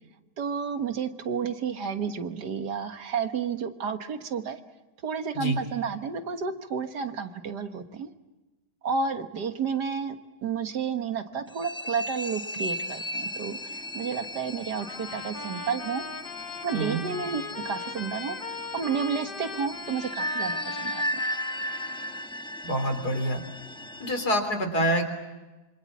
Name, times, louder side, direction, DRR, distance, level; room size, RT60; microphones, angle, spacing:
voice 1, 0.4-4.6 5.0-8.1 8.8-10.2 10.4-16.0 16.6-18.4 18.7-21.2, right 6 dB, 75° right, 8 dB, 2.0 m, -31 dB
sound 1, 11.5-24.3, equal, 5° left, 0.9 m, -36 dB
Trumpet, 14.8-22.3, left 3 dB, 35° left, 1.3 m, -39 dB
voice 2, 22.6-23.4 24.0-25.0, equal, 65° left, 6 dB, 4.1 m, -26 dB
26.5 x 25.5 x 7.3 m, 1.1 s
omnidirectional pair, 1.8 m